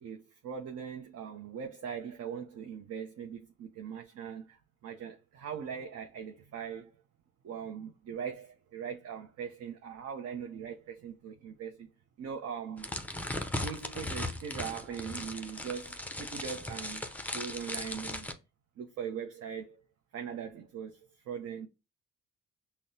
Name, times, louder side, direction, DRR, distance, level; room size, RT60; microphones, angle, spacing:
voice 1, 0.0-7.0 7.4-11.9 12.2-12.9 13.6-17.1 17.3-18.3 18.8-19.8 20.1-21.7, right 7 dB, 55° right, 0.6 m, -41 dB
sound 1, 12.8-18.3, left 1 dB, 5° left, 0.5 m, -38 dB
5.7 x 2.0 x 2.6 m
cardioid pair, 90°, 30 cm